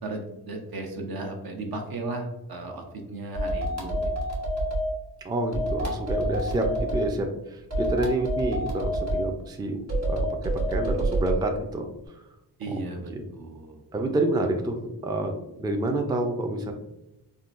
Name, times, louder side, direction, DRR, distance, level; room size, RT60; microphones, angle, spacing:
voice 1, 0.0-4.1 12.6-13.8, right 2 dB, 65° right, 3 dB, 0.7 m, -35 dB
sound 1, 3.3-4.9 5.5-7.0 7.7-9.2 9.9-11.4, right 1 dB, 40° right, 1.2 m, -27 dB
voice 2, 5.2-10.3 10.7-11.9 12.1-12.2 12.7-12.8 13.1-13.2 13.9-16.7, right 1 dB, 10° right, 3 dB, 0.3 m, -28 dB
3.7 x 2.2 x 2.4 m, 0.90 s
cardioid pair, 70°, 40 cm